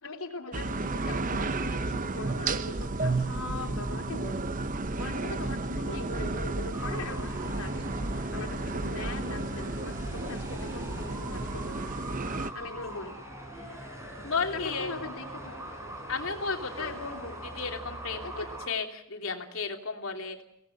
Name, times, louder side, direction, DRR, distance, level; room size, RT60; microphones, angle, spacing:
voice 1, 0.0-4.4 5.0-11.9 12.5-13.2 14.3-15.6 16.7-17.3 18.2-18.5, left 3 dB, 85° left, 4 dB, 3.3 m, -41 dB
sound 1, 0.5-12.5, right 3 dB, 35° right, 0.8 m, -32 dB
sound 2, 2.7-12.0, equal, 55° left, 3.4 m, -44 dB
sound 3, 6.7-18.7, right 1 dB, 15° right, 4.7 m, -42 dB
voice 2, 14.2-14.9 16.1-16.9 17.6-20.4, left 4 dB, 70° left, 3 dB, 3.0 m, -33 dB
23.5 x 17.5 x 7.9 m, 0.81 s
head